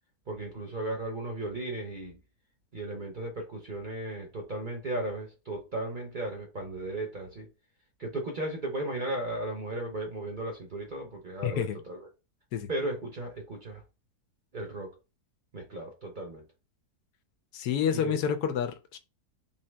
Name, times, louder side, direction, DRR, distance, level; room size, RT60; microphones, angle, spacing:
voice 1, 0.3-2.2 2.7-7.5 8.0-12.1 12.7-13.8 14.5-15.0 15.5-16.5 17.9-18.2, right 2 dB, 40° right, 0.7 m, -35 dB
voice 2, 11.4-11.8 12.5-12.7 17.5-19.0, left 8 dB, 80° left, 1.2 m, -29 dB
3.7 x 2.8 x 3.3 m
omnidirectional pair, 1.7 m